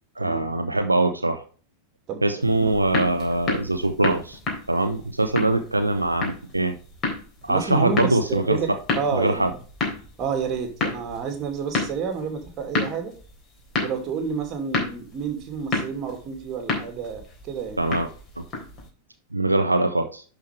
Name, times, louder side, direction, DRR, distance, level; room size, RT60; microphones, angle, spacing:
voice 1, 0.2-1.4 2.2-4.4 4.7-6.8 7.4-8.6 9.1-9.5 17.8-18.1 18.4-18.5 19.3-20.2, right 2 dB, 85° right, 7 dB, 0.7 m, -22 dB
sound 1, 2.4-18.9, left 3 dB, 25° left, 3.6 m, -32 dB
voice 2, 7.5-9.5 10.2-13.1 13.8-17.8, right 6 dB, 35° right, 5 dB, 2.6 m, -29 dB
11.0 x 5.0 x 3.4 m, 0.38 s
figure-of-eight pair, 90°, 0 cm